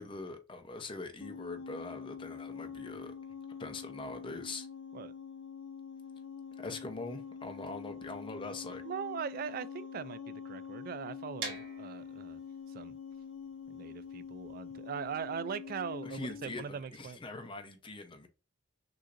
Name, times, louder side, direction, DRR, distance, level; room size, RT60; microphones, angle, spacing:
voice 1, 0.0-3.1 3.6-4.7 6.6-8.8 16.0-18.3, left 3 dB, 25° left, 0.7 m, -43 dB
sound 1, 1.2-16.6, left 6 dB, 80° left, 0.6 m, -45 dB
voice 2, 8.8-12.4 12.7-12.9 13.7-17.2, right 7 dB, 50° right, 0.3 m, -40 dB
sound 2, 11.4-17.2, right 4 dB, 75° right, 1.9 m, -47 dB
6.2 x 2.8 x 2.5 m
head